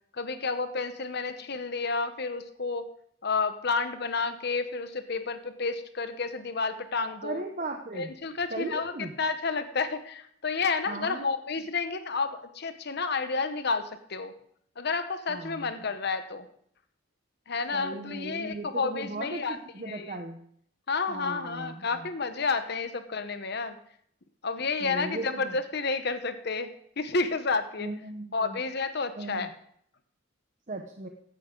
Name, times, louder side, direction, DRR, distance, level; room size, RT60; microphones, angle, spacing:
voice 1, 0.1-2.9 3.2-7.4 7.9-14.3 14.8-16.5 17.5-20.2 20.9-23.8 24.4-27.9 28.3-29.5, left 4 dB, 55° left, 10 dB, 1.0 m, -30 dB
voice 2, 7.2-8.1 8.5-9.1 10.9-11.3 15.3-15.7 17.7-20.4 21.1-22.1 24.8-25.6 27.8-28.6 29.2-29.5 30.7-31.1, right 2 dB, 40° right, 4 dB, 0.9 m, -37 dB
15.5 x 11.5 x 3.8 m, 0.66 s
head